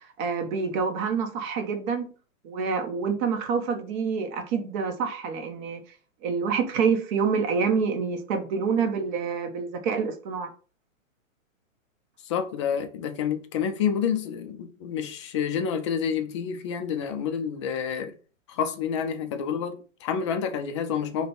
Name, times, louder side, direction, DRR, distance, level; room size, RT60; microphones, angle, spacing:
voice 1, 0.0-2.1 2.4-5.8 6.2-10.5, right 5 dB, 35° right, 0.8 m, -27 dB
voice 2, 12.2-18.1 18.5-21.3, left 7 dB, 25° left, 0.4 m, -28 dB
4.9 x 2.2 x 4.4 m
figure-of-eight pair, 115°, 40 cm